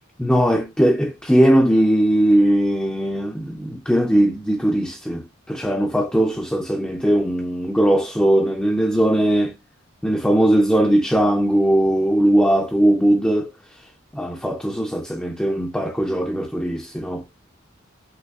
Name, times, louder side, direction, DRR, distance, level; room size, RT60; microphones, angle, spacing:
voice 1, 0.2-9.5 10.0-13.5 14.1-17.2, right 1 dB, 5° left, 0.4 m, -19 dB
5.8 x 3.0 x 2.3 m
head